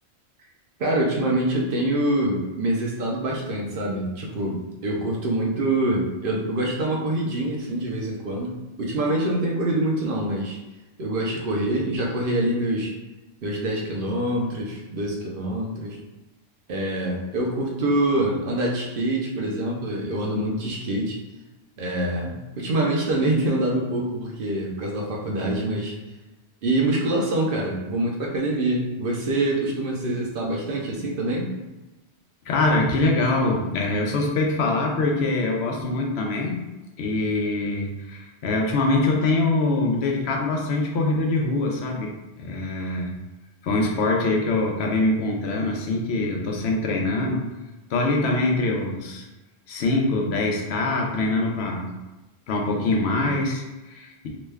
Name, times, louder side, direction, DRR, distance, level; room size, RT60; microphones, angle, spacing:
voice 1, 0.8-10.6 11.0-13.0 13.4-16.0 16.7-21.2 21.8-25.9 26.6-31.5, right 1 dB, 60° right, -1 dB, 0.7 m, -25 dB
voice 2, 32.5-36.6 37.0-42.1 42.4-43.2 43.6-47.4 47.9-49.3 49.7-51.9 52.5-54.3, left 2 dB, 80° left, 0 dB, 0.9 m, -24 dB
3.0 x 2.2 x 3.3 m, 1.1 s
omnidirectional pair, 1.1 m